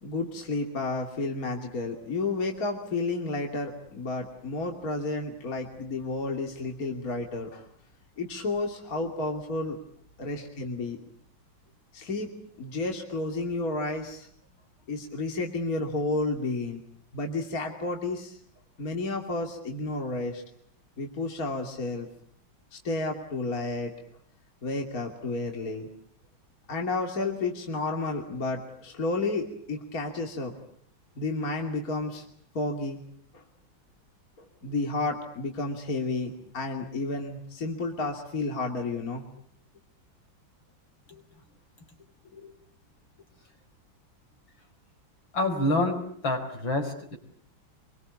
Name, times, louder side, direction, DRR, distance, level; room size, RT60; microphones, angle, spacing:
voice 1, 0.0-7.6 8.2-9.8 10.2-11.0 11.9-12.3 12.6-14.3 14.9-16.8 17.1-18.4 18.8-20.4 21.0-22.1 22.7-23.9 24.6-25.9 26.7-30.5 31.2-32.2 32.5-33.0 33.3-33.4 34.6-39.2 42.3-42.5, left 3 dB, 45° left, 2 dB, 3.1 m, -31 dB
voice 2, 45.3-47.2, left 1 dB, 70° left, 6 dB, 5.3 m, -27 dB
27.0 x 24.0 x 8.4 m, 0.66 s
omnidirectional pair, 2.2 m